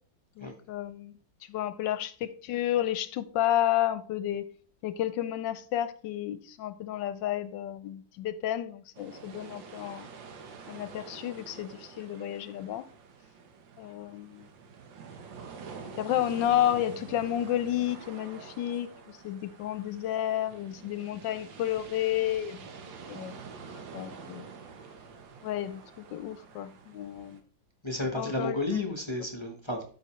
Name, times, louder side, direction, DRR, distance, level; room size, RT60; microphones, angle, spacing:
voice 1, 0.4-1.1 1.5-4.5 4.8-10.1 10.7-12.9 13.8-14.5 16.0-22.7 23.1-23.3 23.9-24.5 25.4-27.4 28.2-28.6, left 12 dB, 75° left, 1.2 m, -31 dB
sound 1, 9.0-27.4, right 5 dB, 75° right, 1.7 m, -47 dB
voice 2, 27.8-29.8, left 2 dB, 20° left, 0.7 m, -32 dB
12.5 x 5.2 x 3.0 m
omnidirectional pair, 2.1 m